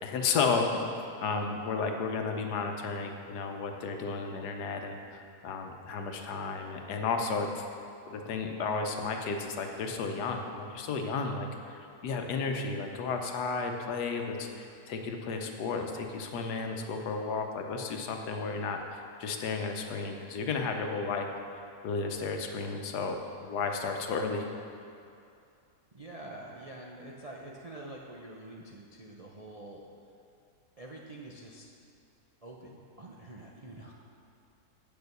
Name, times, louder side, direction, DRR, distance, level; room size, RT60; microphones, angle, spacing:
voice 1, 0.0-0.9 1.2-7.6 8.1-21.3 21.8-24.5, left 4 dB, 85° left, 4 dB, 1.4 m, -33 dB
voice 2, 25.9-29.8 30.8-31.7 32.4-33.9, right 1 dB, 45° right, -2 dB, 0.5 m, -46 dB
8.6 x 7.0 x 6.6 m, 2.5 s
omnidirectional pair, 1.7 m